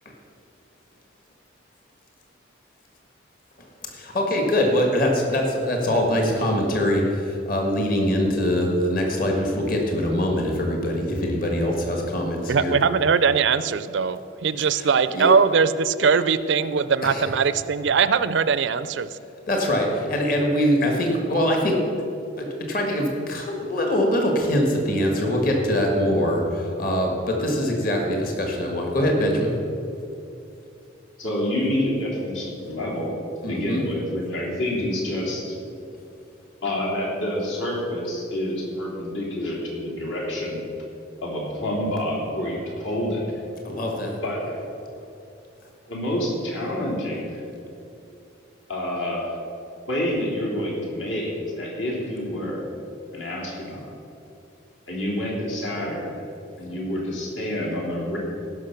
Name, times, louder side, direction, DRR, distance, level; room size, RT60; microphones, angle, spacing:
voice 1, 3.9-12.8 14.7-15.3 17.0-17.3 19.5-21.8 22.4-29.5 33.4-33.8 43.6-44.1, equal, 45° left, 1 dB, 1.6 m, -23 dB
voice 2, 12.5-19.1, right 5 dB, 65° right, 14 dB, 0.4 m, -21 dB
voice 3, 31.2-33.1 33.5-35.5 36.6-40.6 41.2-43.2 44.2-44.6 45.9-47.4 48.7-49.3 49.9-52.7 53.1-53.8 54.9-56.2 56.6-58.2, left 1 dB, 75° left, -4 dB, 3.3 m, -28 dB
16.5 x 6.2 x 5.8 m, 2.7 s
head